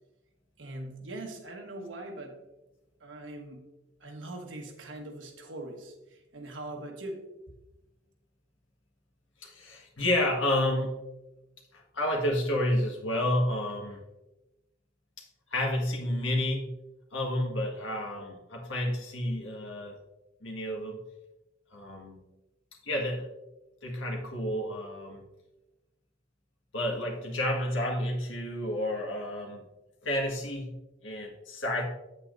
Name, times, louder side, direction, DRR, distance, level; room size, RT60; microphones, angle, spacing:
voice 1, 0.6-2.4 3.0-3.7 4.0-7.3, right 1 dB, 75° right, 2 dB, 1.3 m, -41 dB
voice 2, 9.4-10.9 11.7-14.0 15.5-16.7 17.1-20.0 20.4-21.0 21.7-22.2 22.8-23.3 23.8-25.2 26.7-29.6 30.0-30.7 31.0-31.8, left 1 dB, 75° left, 0 dB, 1.6 m, -30 dB
8.3 x 8.2 x 2.6 m, 1.0 s
head